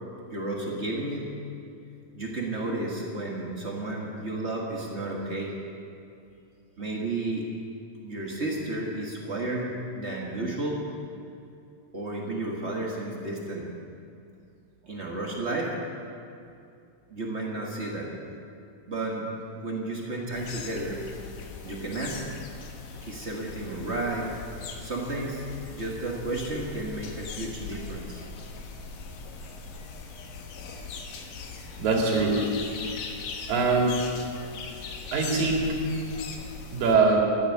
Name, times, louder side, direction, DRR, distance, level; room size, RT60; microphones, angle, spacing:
voice 1, 0.3-1.3 2.1-5.5 6.8-7.4 8.0-10.8 11.9-13.7 14.9-15.7 17.1-18.1 18.9-19.3 19.5-21.0 21.6-22.2 23.0-24.3 24.8-25.4 25.7-28.2, right 2 dB, 40° right, -2 dB, 0.9 m, -32 dB
sound 1, 20.3-37.0, left 4 dB, 75° left, 2.8 m, -40 dB
voice 2, 31.8-32.4 33.5-34.0 35.1-35.7 36.7-37.3, right 4 dB, 80° right, -1 dB, 3.8 m, -22 dB
13.0 x 10.0 x 8.1 m, 2.5 s
omnidirectional pair, 3.9 m